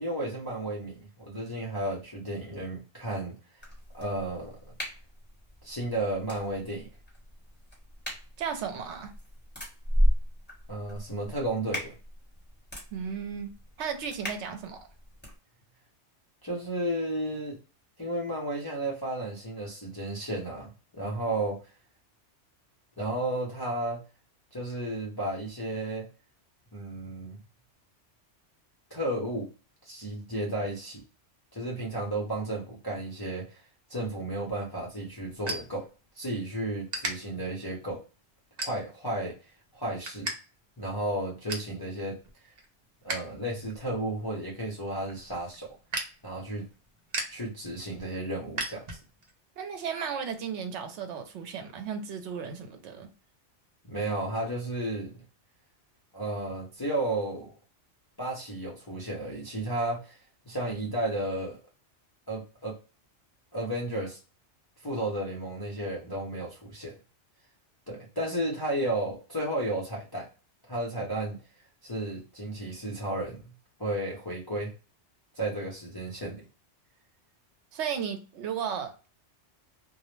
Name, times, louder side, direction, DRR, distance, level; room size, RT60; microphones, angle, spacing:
voice 1, 0.0-3.3 3.9-4.6 5.6-6.9 10.7-11.9 16.4-17.6 18.0-21.6 23.0-24.0 24.5-26.1 26.7-27.4 28.9-29.5 29.8-31.0 31.5-33.6 33.9-35.9 36.2-38.0 38.6-39.3 39.7-40.3 40.8-42.2 43.0-45.7 46.2-46.7 47.3-49.0 53.8-55.1 56.1-57.5 58.2-60.2 60.5-61.6 62.3-62.8 63.5-64.2 64.8-66.9 67.9-70.3 70.7-71.4 71.8-73.4 73.8-74.7 75.3-76.4, right 1 dB, 30° left, 0.5 m, -33 dB
sound 1, 3.6-15.4, equal, 10° left, 1.1 m, -34 dB
voice 2, 8.4-9.1 12.9-13.5 13.8-14.9 49.6-53.1 77.7-79.2, right 7 dB, 75° right, 0.9 m, -35 dB
sound 2, 34.4-36.4 36.9-37.1 37.7-37.9 38.6-39.1 39.5-40.4 40.6-40.7 41.1-41.7 42.2-43.3 43.6-49.3, right 2 dB, 50° right, 0.6 m, -37 dB
2.2 x 2.0 x 3.0 m
omnidirectional pair, 1.2 m